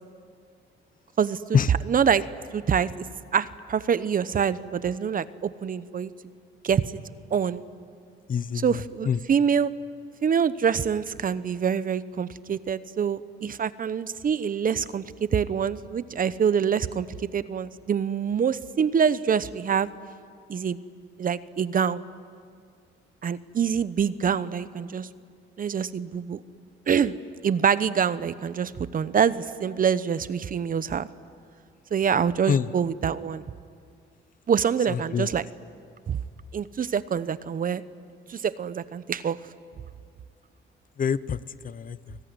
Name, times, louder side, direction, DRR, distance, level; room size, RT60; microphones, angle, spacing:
voice 1, 1.9-2.2 2.5-3.0 3.3-6.1 6.6-6.8 7.3-7.6 8.6-9.7 10.2-15.0 15.3-19.9 20.5-20.8 21.2-22.0 23.2-25.1 25.6-26.4 26.9-27.1 27.4-31.1 31.9-33.4 34.5-35.4 36.1-36.2 36.5-37.8 38.3-39.4, right 7 dB, 45° right, 15 dB, 0.9 m, -25 dB
voice 2, 8.3-9.2 32.5-32.7 34.9-35.3 41.0-41.4 41.6-42.2, left 7 dB, 45° left, 16 dB, 0.8 m, -26 dB
29.5 x 19.5 x 9.7 m, 2.2 s
cardioid pair, 90°, 20 cm